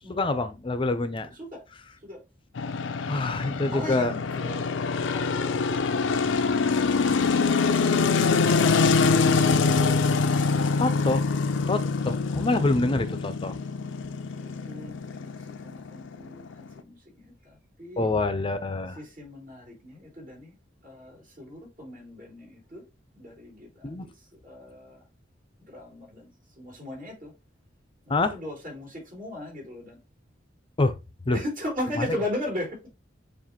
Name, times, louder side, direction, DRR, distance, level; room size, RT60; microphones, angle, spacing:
voice 1, 0.1-1.3 3.1-4.1 10.8-11.2 11.7-13.6 18.0-19.0 23.8-24.1 28.1-28.4 30.8-31.0 31.3-31.4 32.0-32.1, left 2 dB, 30° left, 0.6 m, -26 dB
voice 2, 1.3-1.6 2.0-2.2 3.7-4.8 10.5-10.8 13.4-18.1 18.9-20.5 20.8-22.8 23.1-25.1 25.7-27.3 28.0-30.0 31.3-32.9, left 1 dB, 45° right, 3.1 m, -38 dB
sound 1, 2.6-16.8, left 4 dB, 75° left, 0.5 m, -24 dB
7.3 x 2.5 x 2.9 m
head